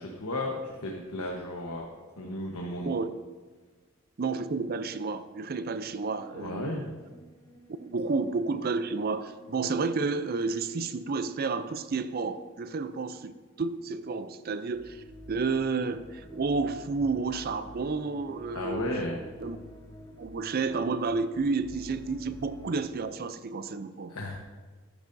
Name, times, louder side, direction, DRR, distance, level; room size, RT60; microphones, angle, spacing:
voice 1, 0.0-1.9 2.2-2.9 6.3-6.9 18.5-19.2 24.1-24.3, left 1 dB, 90° left, -1 dB, 1.2 m, -34 dB
voice 2, 2.9-3.2 4.2-6.9 7.8-18.9 19.4-19.6 20.2-24.1, right 4 dB, 45° right, 12 dB, 0.5 m, -31 dB
sound 1, 6.4-13.4 13.8-14.2 14.7-22.8, equal, 15° left, 0.8 m, -50 dB
14.0 x 10.5 x 2.7 m, 1.4 s
head